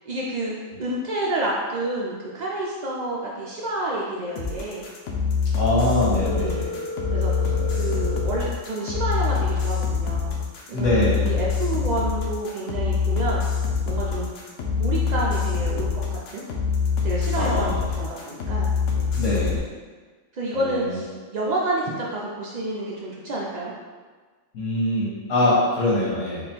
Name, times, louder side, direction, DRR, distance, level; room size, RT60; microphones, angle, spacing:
voice 1, 0.1-0.5 0.8-4.9 6.4-6.7 7.1-10.4 10.7-10.9 11.2-13.4 13.9-14.5 14.8-16.4 17.0-18.7 18.9-19.1 20.3-23.7, right 2 dB, 85° right, -4 dB, 0.3 m, -29 dB
sound 1, 4.4-19.6, left 5 dB, 65° left, 0.8 m, -25 dB
voice 2, 5.5-6.7 7.5-7.9 10.7-11.3 17.4-17.9 19.1-19.6 20.5-21.0 24.5-26.5, left 1 dB, 85° left, -7 dB, 1.2 m, -24 dB
Telephone, 6.2-8.2, left 1 dB, 50° right, 0.7 m, -32 dB
3.6 x 2.3 x 4.1 m, 1.4 s
omnidirectional pair, 1.3 m